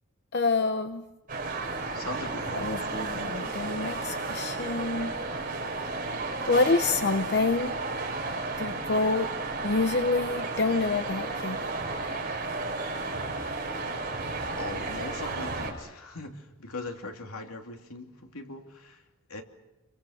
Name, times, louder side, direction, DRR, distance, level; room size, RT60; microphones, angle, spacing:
voice 1, 0.3-1.0 2.5-5.1 6.5-7.7 8.6-9.3 9.6-11.6, left 3 dB, 50° left, 8 dB, 0.8 m, -27 dB
sound 1, 1.3-15.7, right 3 dB, 40° right, 5.5 m, -33 dB
voice 2, 1.9-2.7 14.5-19.0 19.3-19.4, left 2 dB, 85° left, 3 dB, 2.8 m, -40 dB
27.5 x 23.5 x 6.5 m, 1.0 s
head